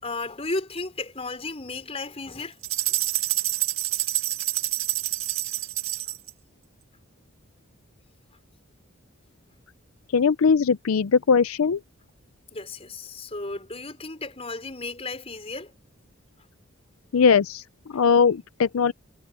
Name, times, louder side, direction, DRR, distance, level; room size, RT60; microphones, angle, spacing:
voice 1, 0.0-2.6 12.5-15.7, left 3 dB, 30° left, 4.7 m, -34 dB
sound 1, 2.6-6.3, right 15 dB, 80° right, 1.7 m, -27 dB
voice 2, 10.1-11.8 17.1-18.9, left 6 dB, 90° left, 0.5 m, -20 dB
head